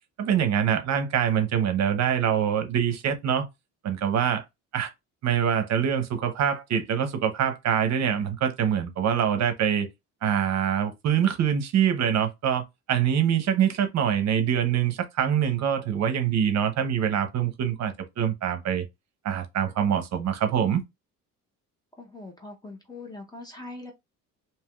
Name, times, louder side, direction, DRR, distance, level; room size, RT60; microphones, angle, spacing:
voice 1, 0.2-3.5 3.8-4.4 4.7-4.9 5.2-9.9 10.2-12.6 12.9-18.9 19.2-20.8, right 9 dB, 50° right, 0.8 m, -24 dB
voice 2, 22.0-23.9, left 2 dB, 10° left, 0.6 m, -42 dB
3.3 x 2.8 x 2.3 m
cardioid pair, 145°, 34 cm